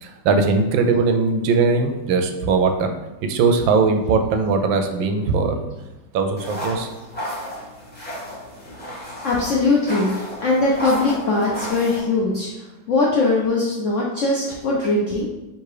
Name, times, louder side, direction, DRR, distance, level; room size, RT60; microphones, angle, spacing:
voice 1, 0.0-2.9 3.2-5.6 6.1-6.9, right 4 dB, 90° right, 6 dB, 1.3 m, -20 dB
sound 1, 6.4-12.0, equal, 5° left, 1.1 m, -33 dB
voice 2, 9.2-12.5 12.9-15.3, left 3 dB, 70° left, -4 dB, 0.7 m, -20 dB
3.7 x 2.8 x 4.7 m, 1.1 s
omnidirectional pair, 2.0 m